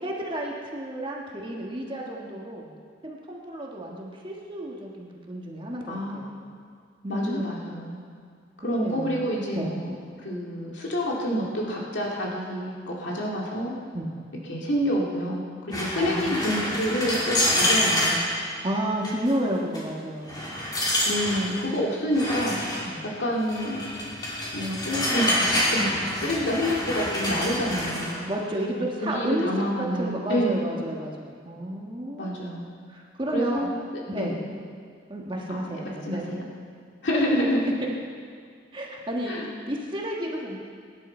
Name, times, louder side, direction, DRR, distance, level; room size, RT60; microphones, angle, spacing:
voice 1, 0.0-2.7 3.0-6.3 7.0-7.5 8.6-9.2 9.5-9.7 13.9-14.1 15.9-16.8 18.6-20.5 22.8-23.0 28.3-29.5 29.8-32.3 32.9-33.7 34.1-34.3 35.1-36.3 38.7-39.4 39.7-40.6, right 1 dB, 25° right, -2 dB, 1.5 m, -31 dB
voice 2, 5.9-6.3 7.1-8.0 8.6-9.9 10.2-13.7 14.5-18.3 21.1-22.6 23.2-24.1 24.5-25.9 26.2-28.3 29.0-30.6 32.2-32.8 33.3-33.7 34.1-34.3 35.5-35.6 36.0-36.4 37.0-37.7 39.3-39.5, equal, 75° left, -3 dB, 2.2 m, -28 dB
sound 1, 15.7-18.2 19.0-19.3 19.7-19.8 20.3-21.5 22.1-22.8 23.5-28.2, left 1 dB, 20° left, 2.8 m, -27 dB
22.5 x 10.5 x 4.4 m, 2.1 s
head